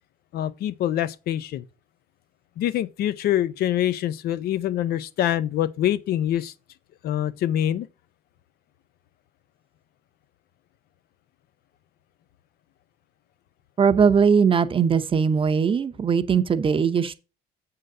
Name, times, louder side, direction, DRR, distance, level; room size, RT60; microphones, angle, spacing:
voice 1, 0.3-1.6 2.6-6.5 7.0-7.9, left 12 dB, 65° left, 0.7 m, -25 dB
voice 2, 13.8-17.1, right 6 dB, 30° right, 0.7 m, -20 dB
7.8 x 3.8 x 6.6 m
cardioid pair, 110°, 17 cm